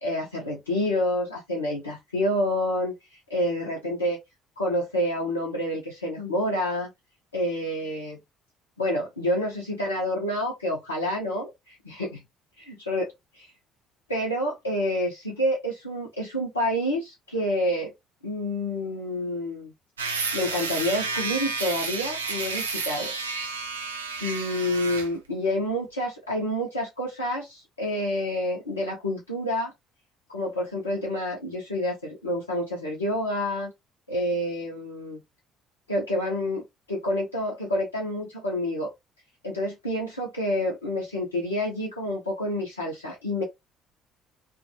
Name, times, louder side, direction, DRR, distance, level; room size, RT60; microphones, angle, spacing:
voice 1, 0.0-4.2 4.6-6.9 7.3-8.2 8.8-12.1 12.7-13.5 14.1-17.9 18.2-19.7 20.3-23.1 24.2-29.7 30.3-33.7 34.1-35.2 35.9-38.9 39.4-43.4, left 1 dB, 85° left, 0.6 m, -28 dB
sound 1, 20.0-25.1, right 4 dB, 85° right, 0.4 m, -31 dB
2.5 x 2.2 x 2.6 m
figure-of-eight pair, 55°, 0 cm